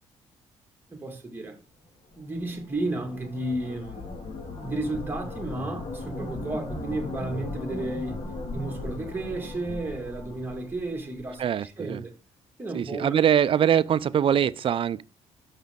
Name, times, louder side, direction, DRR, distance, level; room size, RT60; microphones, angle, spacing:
voice 1, 0.9-1.6 2.2-4.1 4.6-8.2 8.5-12.1 12.6-13.1, right 2 dB, 15° right, 2.0 m, -33 dB
sound 1, 2.1-11.4, left 2 dB, 45° left, 2.1 m, -37 dB
voice 2, 11.4-12.0 12.7-15.0, right 9 dB, 45° right, 0.4 m, -23 dB
6.3 x 5.7 x 3.6 m
cardioid pair, 95°, 12 cm